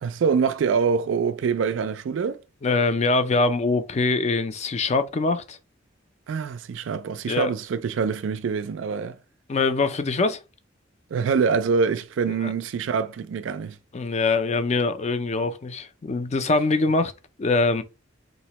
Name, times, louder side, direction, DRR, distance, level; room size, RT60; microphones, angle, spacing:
voice 1, 0.0-2.4 6.3-9.2 11.1-13.8, right 5 dB, 75° right, 0.4 m, -25 dB
voice 2, 2.6-5.6 7.3-7.5 9.5-10.4 12.4-12.5 13.9-17.1 17.4-17.8, left 3 dB, 35° left, 0.4 m, -23 dB
3.9 x 2.1 x 2.9 m
head